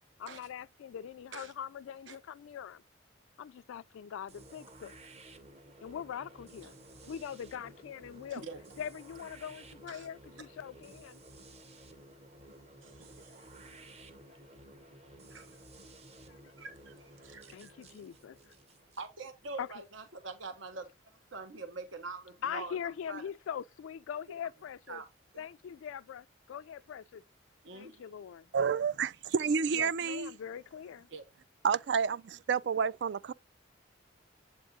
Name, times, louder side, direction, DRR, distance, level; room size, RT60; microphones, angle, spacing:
voice 1, 0.2-2.8 3.4-4.9 5.8-6.7 7.1-8.4 8.8-11.2 16.3-16.4 17.5-18.4 19.6-19.7 22.4-25.0 25.4-27.2 27.7-28.5 29.7-31.1, left 8 dB, 85° left, 0.3 m, -42 dB
sound 1, 4.3-20.1, right 1 dB, 30° right, 0.9 m, -54 dB
voice 2, 6.6-7.1 8.3-8.6 9.9-10.1 12.8-13.9 15.3-15.6 16.6-17.9 19.0-22.8 23.1-23.2 24.9-25.1 25.3-25.5 27.6-28.0 31.1-31.2, right 4 dB, 80° right, 1.2 m, -45 dB
voice 3, 28.5-30.3 31.6-33.3, right 6 dB, 60° right, 0.3 m, -30 dB
7.9 x 3.8 x 3.7 m
head